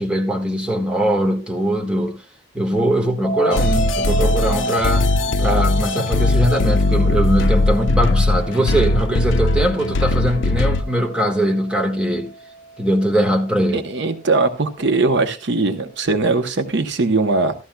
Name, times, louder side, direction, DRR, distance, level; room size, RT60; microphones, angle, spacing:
voice 1, 0.0-2.2 2.5-5.1 5.4-12.3 12.8-13.8, equal, 5° right, 1.5 m, -21 dB
sound 1, 3.2-14.1, right 3 dB, 35° right, 5.7 m, -31 dB
sound 2, 3.5-10.8, left 2 dB, 70° left, 0.5 m, -19 dB
voice 2, 13.7-17.5, right 3 dB, 65° right, 0.8 m, -20 dB
14.5 x 12.5 x 2.2 m
head